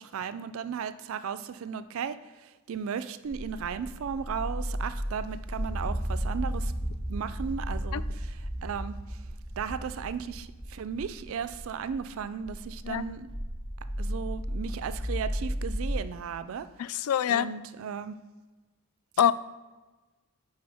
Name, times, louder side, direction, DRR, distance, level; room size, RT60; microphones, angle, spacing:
voice 1, 0.0-6.7 7.1-9.2 9.6-13.3 14.0-18.2, right 7 dB, 75° right, 13 dB, 0.4 m, -36 dB
sound 1, 3.3-16.0, equal, 50° left, 1.9 m, -34 dB
voice 2, 16.8-17.5 19.2-19.3, left 9 dB, 90° left, 16 dB, 0.3 m, -25 dB
8.8 x 3.9 x 3.4 m, 1.2 s
head